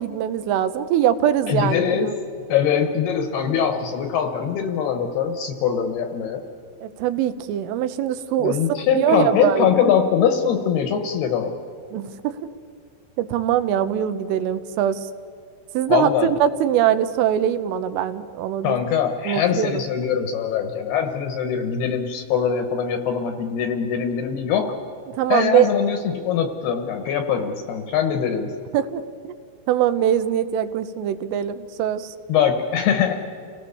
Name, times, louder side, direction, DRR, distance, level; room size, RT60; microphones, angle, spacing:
voice 1, 0.0-2.2 6.8-8.6 8.9-9.7 11.9-12.4 13.2-15.1 15.8-16.1 16.4-18.8 19.3-19.8 25.1-25.7 28.7-29.0 29.7-32.2, right 10 dB, 85° right, 11 dB, 3.4 m, -22 dB
voice 2, 1.5-2.1 2.5-6.4 8.4-11.6 15.9-16.3 18.6-24.8 25.3-28.5 32.3-33.1, left 8 dB, 70° left, 6 dB, 2.7 m, -22 dB
29.5 x 18.5 x 7.1 m, 2.4 s
omnidirectional pair, 5.6 m